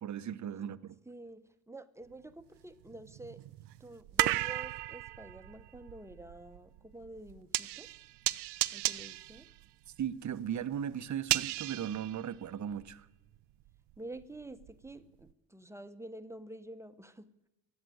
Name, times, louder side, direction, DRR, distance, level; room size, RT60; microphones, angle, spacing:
voice 1, 0.0-1.0 10.0-13.1, right 9 dB, 40° right, 0.9 m, -37 dB
voice 2, 1.1-3.4 3.8-8.0 8.7-9.5 14.0-17.3, right 1 dB, 5° right, 1.0 m, -48 dB
sound 1, 2.1-2.2 2.8-12.9 13.3-14.9 15.3-15.4, right 17 dB, 70° right, 0.6 m, -36 dB
14.5 x 8.0 x 9.4 m
supercardioid pair, 65°, 43 cm